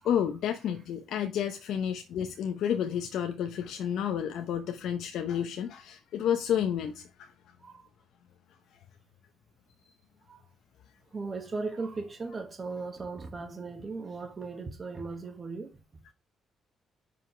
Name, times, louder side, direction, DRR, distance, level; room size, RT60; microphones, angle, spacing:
voice 1, 0.0-7.3, left 9 dB, 80° left, 0.8 m, -30 dB
voice 2, 11.1-15.7, right 3 dB, 35° right, 1.5 m, -37 dB
5.6 x 5.1 x 5.6 m
cardioid pair, 90°, 0 cm